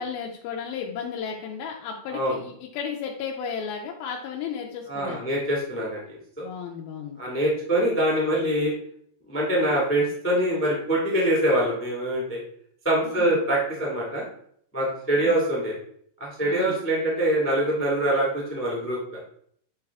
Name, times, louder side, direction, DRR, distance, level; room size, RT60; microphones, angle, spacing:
voice 1, 0.0-5.2 6.4-7.2 13.0-13.4 15.2-15.4 16.4-16.8, left 6 dB, 85° left, 0 dB, 2.5 m, -34 dB
voice 2, 4.9-6.4 7.2-8.7 9.3-12.4 12.8-14.2 14.7-15.7 16.2-19.0, right 1 dB, 10° left, -4 dB, 0.6 m, -24 dB
8.5 x 3.4 x 3.5 m, 0.65 s
omnidirectional pair, 4.1 m